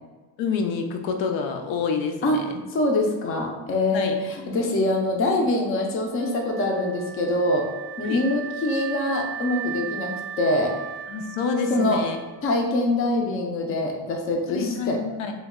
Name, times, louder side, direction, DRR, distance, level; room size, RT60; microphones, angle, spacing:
voice 1, 0.4-2.6 3.9-4.2 8.0-8.2 11.1-12.2 14.5-15.3, left 5 dB, 75° left, 4 dB, 0.6 m, -27 dB
voice 2, 2.7-7.7 8.0-10.7 11.7-12.0 12.4-15.0, left 1 dB, 30° left, 1 dB, 0.5 m, -24 dB
Wind instrument woodwind instrument, 6.2-13.2, right 10 dB, 60° right, 0.5 m, -37 dB
3.1 x 2.2 x 3.6 m, 1.3 s
cardioid pair, 145°, 45 cm